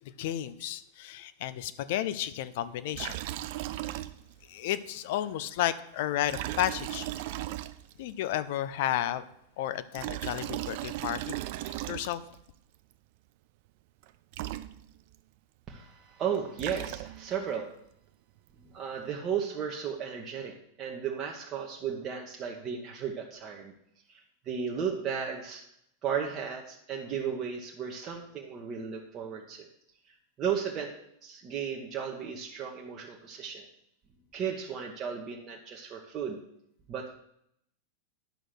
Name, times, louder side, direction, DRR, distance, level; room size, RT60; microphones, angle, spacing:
voice 1, 0.2-3.2 3.8-4.0 4.5-7.1 8.0-9.2 9.6-11.4 11.6-12.2, left 12 dB, 50° left, 13 dB, 0.6 m, -32 dB
Liquid, 2.9-4.5 4.7-4.8 6.2-8.1 9.7-12.4 14.0-14.1 14.3-15.2 16.3-17.4, right 15 dB, 50° right, 0.5 m, -37 dB
voice 2, 15.7-17.7 18.7-23.7 24.1-25.6 26.0-29.7 30.1-30.9 31.2-33.7 34.3-36.4 36.9-37.1, right 7 dB, 30° right, -1 dB, 1.3 m, -35 dB
10.5 x 6.2 x 6.3 m, 0.74 s
figure-of-eight pair, 90°, 0 cm